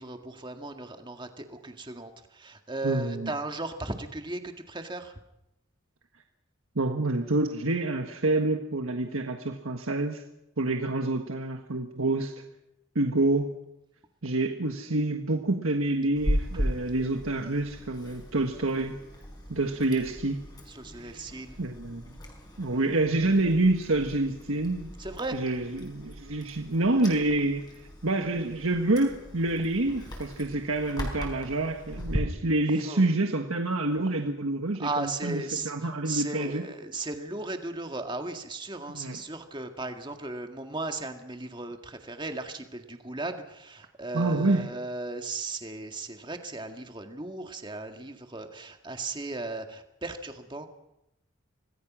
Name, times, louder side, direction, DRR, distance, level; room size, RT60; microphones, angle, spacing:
voice 1, 0.0-5.2 20.7-21.6 22.7-22.8 25.0-25.4 32.8-33.1 34.8-50.7, right 2 dB, 25° right, 5 dB, 1.9 m, -36 dB
voice 2, 2.8-3.3 6.7-10.2 10.6-12.4 12.9-13.5 14.2-19.0 19.5-20.4 21.0-21.2 21.6-22.2 22.6-24.9 25.3-36.6 38.9-39.2 44.1-44.7, right 2 dB, 90° right, 4 dB, 1.5 m, -27 dB
Chewing mastication, 16.2-32.2, equal, 20° left, 4.9 m, -38 dB
26.5 x 19.0 x 6.2 m, 0.86 s
head